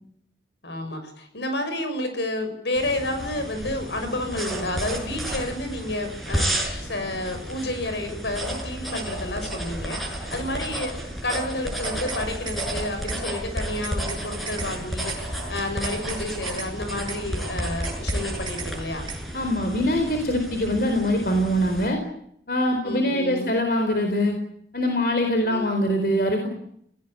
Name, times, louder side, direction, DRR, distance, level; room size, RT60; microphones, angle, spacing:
voice 1, 0.6-6.6 6.8-19.1 22.8-23.5 25.4-25.8, left 1 dB, 85° left, 7 dB, 6.8 m, -30 dB
sound 1, 2.8-21.9, right 1 dB, ahead, 6.8 m, -32 dB
sound 2, 11.6-12.2 12.5-12.7 13.1-13.2 13.6-14.2 14.5-14.7 15.1-15.2 15.6-16.2 16.5-16.7 17.1-17.2 17.6-18.2 18.5-18.7 19.1-19.2, right 6 dB, 25° right, 3.0 m, -36 dB
voice 2, 19.3-22.0 22.5-24.4 24.7-26.5, equal, 55° left, 4 dB, 4.3 m, -23 dB
30.0 x 18.0 x 8.7 m, 0.71 s
head